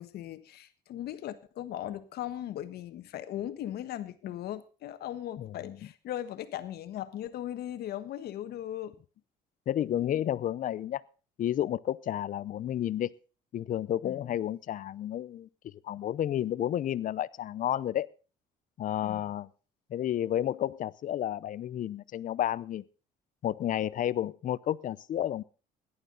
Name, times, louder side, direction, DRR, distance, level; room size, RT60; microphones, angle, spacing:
voice 1, 0.0-8.9 14.0-14.3 19.0-19.2, left 12 dB, 70° left, 1.4 m, -38 dB
voice 2, 5.4-5.8 9.7-11.0 11.4-13.1 13.5-18.1 18.8-19.5 19.9-22.8 23.4-25.4, left 11 dB, 50° left, 0.7 m, -31 dB
17.5 x 11.5 x 4.0 m
cardioid pair, 110°, 17 cm